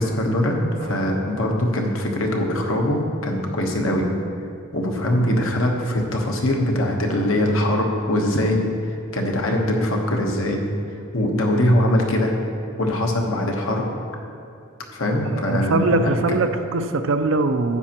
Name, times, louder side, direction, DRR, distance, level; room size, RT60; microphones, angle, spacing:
voice 1, 0.0-4.1 4.7-8.7 9.1-10.6 11.1-12.3 12.8-13.8 14.9-16.1, left 1 dB, 70° left, 1 dB, 1.2 m, -22 dB
voice 2, 15.2-17.8, right 3 dB, 65° right, 8 dB, 0.5 m, -22 dB
12.5 x 8.6 x 3.0 m, 2.4 s
head